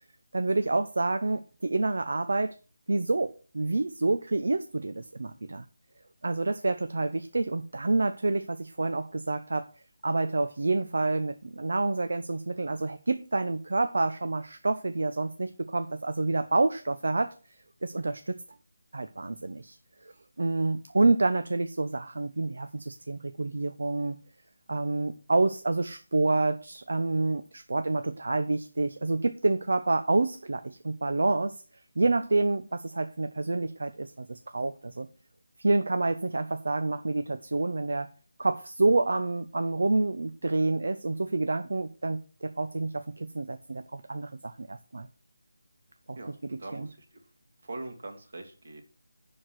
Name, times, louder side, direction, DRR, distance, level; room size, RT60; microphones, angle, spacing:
voice 1, 0.3-2.5 2.9-5.6 6.2-9.7 10.0-17.3 17.8-18.4 18.9-19.8 20.0-24.2 24.7-31.6 32.0-35.1 35.6-38.1 38.4-45.1 46.1-46.2 46.4-46.9, right 2 dB, 65° right, 10 dB, 0.8 m, -28 dB
voice 2, 46.1-47.2 47.6-48.8, right 2 dB, 50° right, 4 dB, 2.3 m, -42 dB
7.7 x 6.0 x 6.2 m, 0.36 s
figure-of-eight pair, 175°, 0 cm